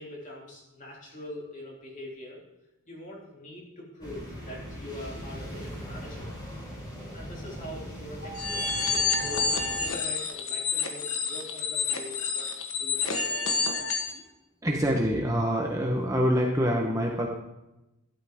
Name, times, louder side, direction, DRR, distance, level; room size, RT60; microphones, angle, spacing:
voice 1, 0.0-2.4 2.9-6.3 7.1-12.5 12.8-14.1, left 1 dB, 35° left, -3 dB, 3.3 m, -43 dB
sound 1, 4.0-9.9, equal, 20° left, 3.6 m, -40 dB
sound 2, 8.2-9.8, right 3 dB, 85° left, 2.1 m, -41 dB
sound 3, 8.4-14.2, left 4 dB, 65° left, 1.4 m, -29 dB
voice 2, 14.6-17.3, equal, 15° right, 0 dB, 1.1 m, -25 dB
12.0 x 12.0 x 3.7 m, 0.95 s
head